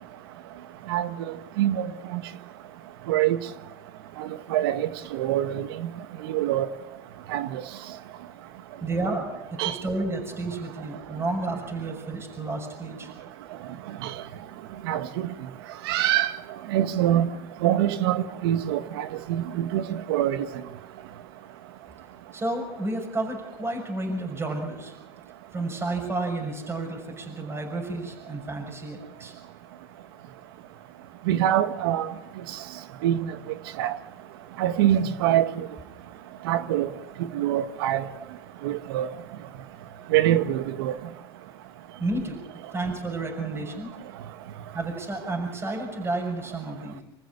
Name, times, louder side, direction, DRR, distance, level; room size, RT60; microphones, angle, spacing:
voice 1, 0.9-1.3 1.6-2.2 3.1-3.4 4.2-5.7 6.3-6.7 7.3-7.6 9.6-9.7 14.8-15.3 15.9-16.3 16.7-17.3 17.6-20.4 31.3-32.1 33.0-33.3 33.8-33.9 34.6-35.5 36.4-36.9 37.3-38.0 38.6-39.1 40.1-40.9, right 12 dB, 75° right, 1.6 m, -24 dB
voice 2, 8.8-13.1 22.3-24.9 25.5-29.3 38.2-38.3 42.0-42.4 42.7-43.9 44.7-47.0, right 2 dB, 20° right, 6.3 m, -31 dB
26.5 x 14.5 x 8.6 m
hypercardioid pair, 95°, 13 cm